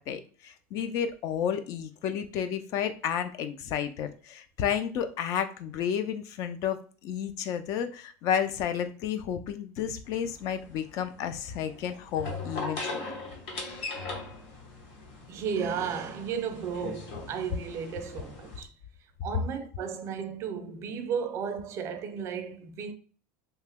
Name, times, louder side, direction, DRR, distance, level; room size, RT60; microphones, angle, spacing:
voice 1, 0.0-13.1, left 8 dB, 45° left, 0.3 m, -31 dB
sound 1, 10.0-18.6, left 3 dB, 65° left, 1.1 m, -40 dB
voice 2, 15.3-18.7 19.2-22.9, right 7 dB, 35° right, 0.4 m, -34 dB
2.9 x 2.2 x 3.3 m
supercardioid pair, 155°, 8 cm